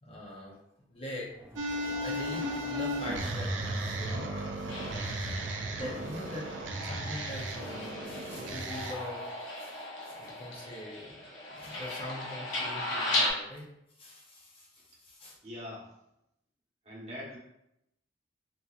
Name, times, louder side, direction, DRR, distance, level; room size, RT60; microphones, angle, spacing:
voice 1, 0.0-0.6 0.9-1.3 1.6-4.4 4.7-5.1 5.7-9.2 9.6-9.7 10.0-11.2 11.5-13.7 14.0-15.4, left 1 dB, 30° left, -3 dB, 0.7 m, -43 dB
Crowd, 1.3-6.5, right 1 dB, 15° right, 0.3 m, -48 dB
sound 1, 1.6-8.9, right 1 dB, 70° right, 0.5 m, -35 dB
sound 2, 4.7-13.3, left 2 dB, 85° left, 1.0 m, -37 dB
voice 2, 15.4-15.9 16.8-17.4, left 1 dB, 35° right, -5 dB, 1.2 m, -42 dB
3.9 x 3.0 x 2.4 m, 0.82 s
head